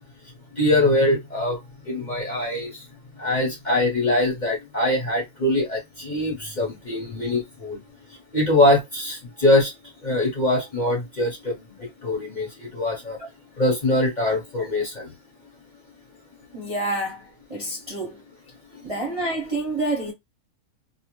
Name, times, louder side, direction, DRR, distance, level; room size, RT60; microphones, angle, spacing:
voice 1, 0.5-1.6 1.8-2.8 3.2-7.8 8.3-9.7 10.0-13.2 13.6-15.1 18.7-18.8, left 1 dB, 35° left, 0.8 m, -23 dB
voice 2, 16.5-18.2 18.8-20.1, right 2 dB, 30° right, 0.7 m, -28 dB
2.6 x 2.1 x 3.0 m
omnidirectional pair, 1.5 m